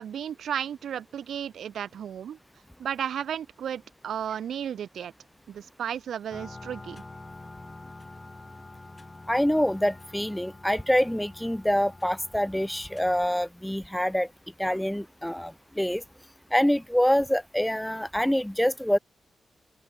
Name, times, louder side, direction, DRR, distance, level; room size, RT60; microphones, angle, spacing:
voice 1, 0.0-2.4 2.8-5.1 5.5-7.0, right 9 dB, 85° right, 1.8 m, -34 dB
sound 1, 6.3-13.2, left 2 dB, 20° left, 2.7 m, -46 dB
voice 2, 9.3-14.3 14.6-16.0 16.5-19.0, equal, 5° left, 1.4 m, -25 dB
open air
wide cardioid pair, 125°, 0 cm